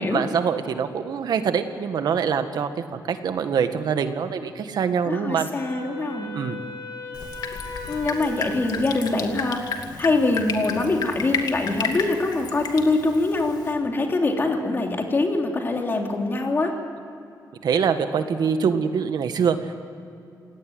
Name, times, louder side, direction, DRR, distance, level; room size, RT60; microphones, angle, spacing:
voice 1, 0.0-5.5 6.3-6.6 17.6-19.7, right 6 dB, 70° right, 8 dB, 1.8 m, -24 dB
voice 2, 5.0-6.3 7.9-16.7, left 2 dB, 30° left, 2 dB, 3.3 m, -24 dB
Wind instrument woodwind instrument, 5.5-9.9, left 3 dB, 85° left, 2.9 m, -38 dB
Drip, 7.1-13.7, left 5 dB, 70° left, 2.5 m, -32 dB
28.0 x 18.0 x 9.6 m, 2.6 s
wide cardioid pair, 150°, 7 cm